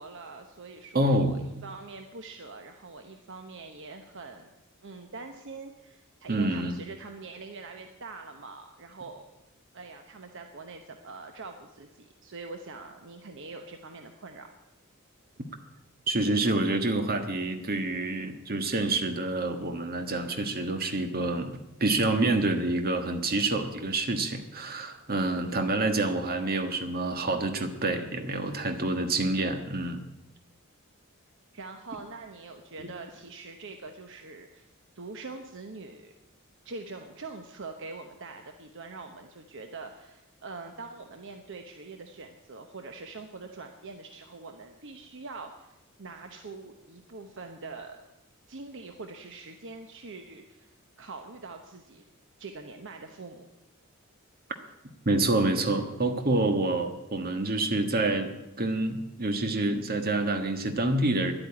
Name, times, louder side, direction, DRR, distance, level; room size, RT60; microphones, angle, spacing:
voice 1, 0.0-4.5 4.8-9.2 9.7-14.5 31.5-34.7 34.9-36.1 36.6-45.7 46.0-48.0 48.5-52.0 52.4-53.5, right 3 dB, 60° right, 5 dB, 1.0 m, -44 dB
voice 2, 0.9-1.3 6.3-6.8 16.1-30.0 55.0-61.3, right 2 dB, 45° right, 6 dB, 1.5 m, -27 dB
11.0 x 8.8 x 9.6 m, 0.95 s
head